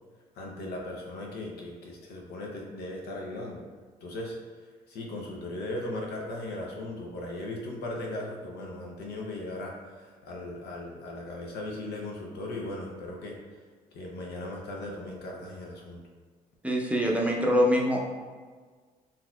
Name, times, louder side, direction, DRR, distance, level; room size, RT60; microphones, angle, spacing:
voice 1, 0.4-3.6 4.0-4.4 4.9-13.4 13.9-16.0, left 1 dB, 75° left, -1 dB, 0.7 m, -37 dB
voice 2, 16.6-18.0, equal, 10° right, -2 dB, 0.6 m, -24 dB
3.9 x 2.8 x 2.3 m, 1.5 s
supercardioid pair, 75°, 17 cm